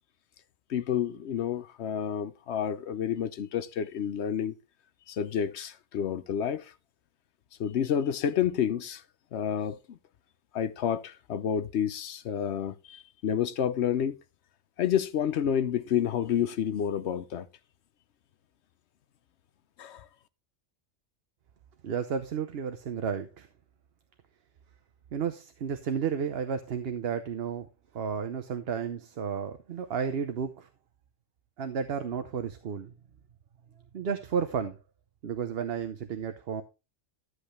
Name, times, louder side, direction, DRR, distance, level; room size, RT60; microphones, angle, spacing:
voice 1, 0.7-4.5 5.1-6.7 7.6-9.0 9.3-10.0 10.5-14.2 14.8-17.5 19.8-20.1, left 9 dB, 65° left, 1.0 m, -29 dB
voice 2, 21.8-23.5 25.1-27.7 27.9-30.7 31.6-32.9 33.9-34.8 35.2-36.6, right 7 dB, 55° right, 0.9 m, -32 dB
12.5 x 8.0 x 3.2 m
omnidirectional pair, 1.3 m